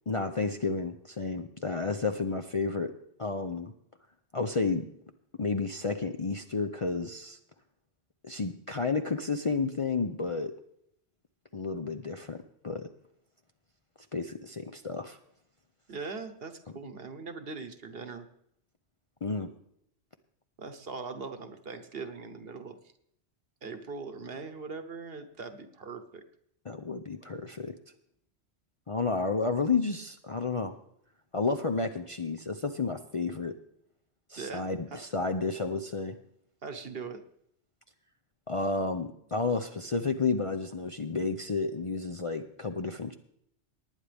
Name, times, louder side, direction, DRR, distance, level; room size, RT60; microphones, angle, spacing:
voice 1, 0.1-2.9 3.2-3.7 4.3-4.8 5.4-7.4 8.2-10.5 11.5-12.4 12.6-12.8 14.1-15.2 19.2-19.5 26.7-27.7 28.9-30.8 31.3-33.5 34.3-36.2 38.5-43.1, left 4 dB, 40° left, 6 dB, 0.5 m, -31 dB
voice 2, 15.9-18.3 20.6-22.8 23.6-26.2 34.4-34.6 34.9-35.0 36.6-37.2, right 4 dB, 60° right, 8 dB, 1.3 m, -40 dB
19.0 x 9.8 x 3.4 m, 0.71 s
omnidirectional pair, 1.2 m